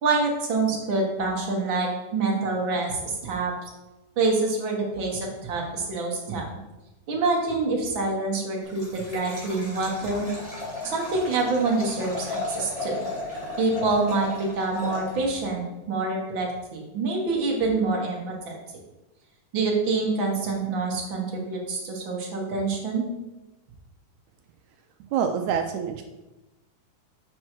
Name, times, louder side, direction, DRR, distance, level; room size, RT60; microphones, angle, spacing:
voice 1, 0.0-3.5 4.2-6.5 7.1-10.3 10.8-13.0 13.6-18.8 19.5-23.1, right 3 dB, 50° right, -1 dB, 1.6 m, -26 dB
Liquid, 8.6-15.5, left 2 dB, 15° left, 1.8 m, -35 dB
voice 2, 25.1-26.0, right 7 dB, 85° right, 5 dB, 1.6 m, -26 dB
7.8 x 5.4 x 4.5 m, 1.0 s
omnidirectional pair, 3.8 m